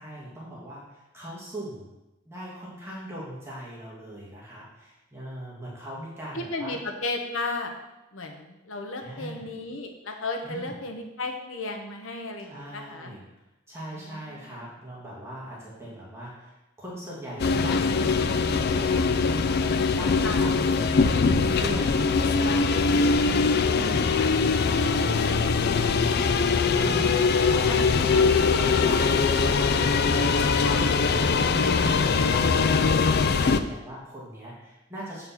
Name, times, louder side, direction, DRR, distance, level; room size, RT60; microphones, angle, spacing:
voice 1, 0.0-1.9 2.3-6.7 9.0-9.4 10.4-10.7 12.4-13.3 13.7-29.7 30.1-35.3, right 1 dB, 15° right, -6 dB, 1.8 m, -40 dB
voice 2, 6.3-7.7 8.1-13.1 13.9-14.5 20.2-20.5 23.3-24.1 27.6-28.3 30.6-30.9, left 2 dB, 85° left, 3 dB, 1.1 m, -35 dB
sound 1, 17.4-33.6, left 4 dB, 55° left, 0.4 m, -22 dB
7.9 x 4.4 x 5.7 m, 0.98 s
head